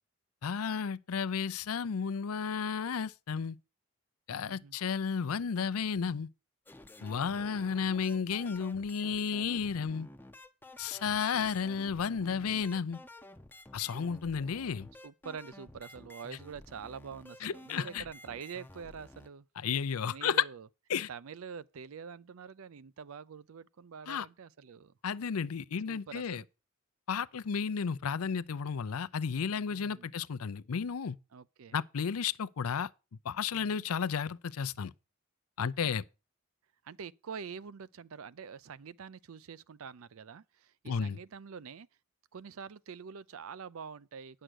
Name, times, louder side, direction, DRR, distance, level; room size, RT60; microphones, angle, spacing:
voice 1, 0.4-3.6 4.3-6.3 7.0-10.1 10.8-13.0 13.7-14.9 17.4-18.0 19.6-20.4 20.9-21.1 24.1-24.3 25.0-26.4 27.1-31.2 31.7-32.9 33.2-34.9 35.6-36.0 40.9-41.2, left 6 dB, 85° left, 0.5 m, -33 dB
voice 2, 4.3-4.8 15.0-19.5 20.1-20.7 21.1-24.9 25.9-26.5 29.7-30.1 31.3-31.8 33.5-33.8 35.6-36.0 36.8-41.9 42.3-44.4, right 6 dB, 75° right, 0.5 m, -46 dB
sound 1, 6.7-19.3, left 1 dB, 10° left, 0.6 m, -52 dB
10.0 x 6.4 x 6.2 m
head